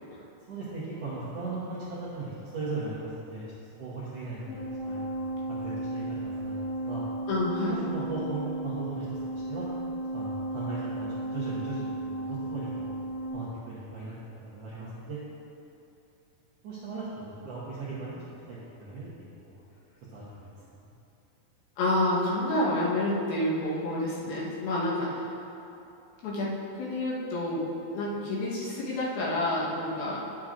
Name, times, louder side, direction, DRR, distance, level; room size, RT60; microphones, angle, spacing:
voice 1, 0.5-7.0 7.6-9.7 10.1-12.9 13.3-14.2 14.4-15.2 16.6-18.1 18.5-19.1 19.5-19.6 20.1-20.9, right 3 dB, 65° right, -10 dB, 1.6 m, -38 dB
sound 1, 4.5-13.3, right 1 dB, 65° left, 3.0 m, -34 dB
voice 2, 7.3-7.8 21.8-25.3 26.2-27.6 27.9-30.2, left 1 dB, 80° left, -5 dB, 3.1 m, -29 dB
10.5 x 7.4 x 2.5 m, 2.9 s
omnidirectional pair, 4.3 m